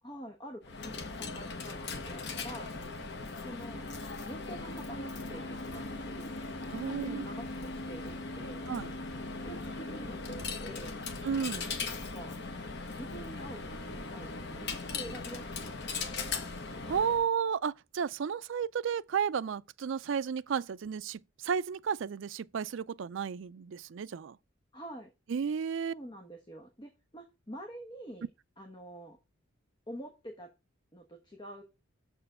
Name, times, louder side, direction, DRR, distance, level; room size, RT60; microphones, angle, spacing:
voice 1, 0.0-2.7 3.4-3.9 4.2-6.4 6.8-8.6 9.4-11.0 12.0-12.4 12.9-16.5 24.7-25.1 25.9-28.3 28.6-29.2 29.9-30.5 30.9-31.6, right 1 dB, 25° left, 1.1 m, -47 dB
Coin (dropping), 0.6-17.3, left 3 dB, 55° left, 1.2 m, -39 dB
voice 2, 6.7-7.2 8.7-8.9 11.2-11.7 16.9-24.4 25.3-25.9, right 7 dB, 60° right, 0.4 m, -33 dB
6.8 x 4.4 x 6.5 m
head